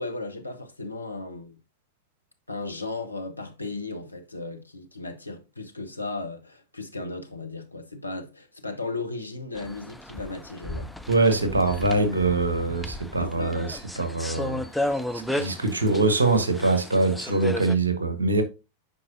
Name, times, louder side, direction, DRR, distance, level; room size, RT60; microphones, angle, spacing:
voice 1, 0.0-1.6 2.5-10.9 13.2-13.6, left 3 dB, 85° left, 0.9 m, -35 dB
sound 1, 9.6-17.8, left 1 dB, ahead, 0.6 m, -34 dB
voice 2, 11.1-14.6 15.1-18.4, right 3 dB, 75° right, 1.2 m, -23 dB
8.5 x 5.3 x 2.6 m
figure-of-eight pair, 90°, 0 cm